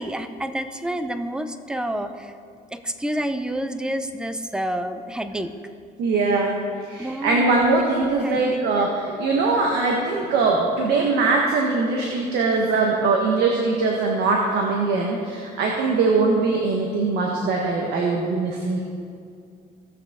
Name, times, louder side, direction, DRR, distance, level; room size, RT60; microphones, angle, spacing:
voice 1, 0.0-2.3 2.7-5.5 7.0-7.7 8.0-8.7, right 1 dB, 5° right, 9 dB, 0.6 m, -29 dB
voice 2, 6.0-6.6 6.9-18.8, right 3 dB, 80° right, -1 dB, 1.3 m, -21 dB
16.5 x 6.8 x 3.7 m, 2.3 s
cardioid pair, 110°, 17 cm